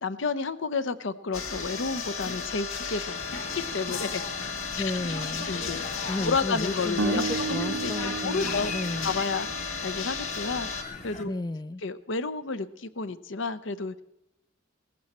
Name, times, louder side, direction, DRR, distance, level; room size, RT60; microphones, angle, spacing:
voice 1, 0.0-4.2 5.2-8.7 9.0-10.7 11.0-11.3 11.8-13.9, left 4 dB, 65° left, 14 dB, 0.7 m, -31 dB
sound 1, 1.3-10.8, left 5 dB, 85° left, 1.8 m, -34 dB
sound 2, 3.1-11.2, left 3 dB, 35° left, 1.1 m, -42 dB
voice 2, 4.8-5.5 6.1-9.1 11.2-11.8, left 2 dB, 20° left, 13 dB, 0.4 m, -33 dB
sound 3, 7.0-10.1, right 4 dB, 80° right, 0.7 m, -33 dB
18.0 x 15.0 x 4.3 m, 0.90 s
head